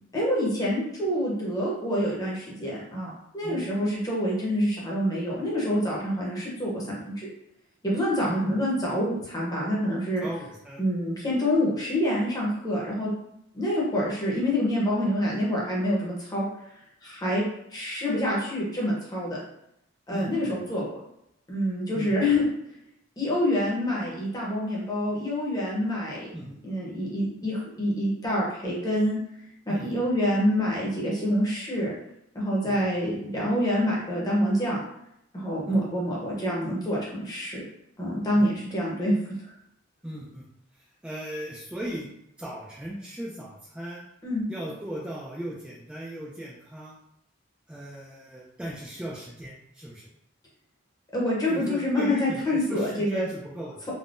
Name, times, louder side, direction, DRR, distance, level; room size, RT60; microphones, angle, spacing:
voice 1, 0.1-7.3 7.8-10.2 10.8-13.1 13.5-16.5 17.0-17.4 17.7-19.4 20.1-20.9 21.5-22.5 23.2-26.3 26.6-29.2 29.7-31.9 32.3-34.8 35.3-37.6 38.0-39.3 44.2-44.4 51.1-53.3, equal, 20° left, -5 dB, 0.8 m, -26 dB
voice 2, 10.2-10.8 20.1-20.5 21.9-22.2 26.3-26.6 29.7-30.0 32.6-32.8 35.7-35.8 38.4-38.5 40.0-40.5 40.7-42.1 42.4-44.0 44.5-47.0 47.7-50.1 51.5-53.8, right 1 dB, 5° right, -6 dB, 0.3 m, -37 dB
3.4 x 2.1 x 2.5 m, 0.79 s
head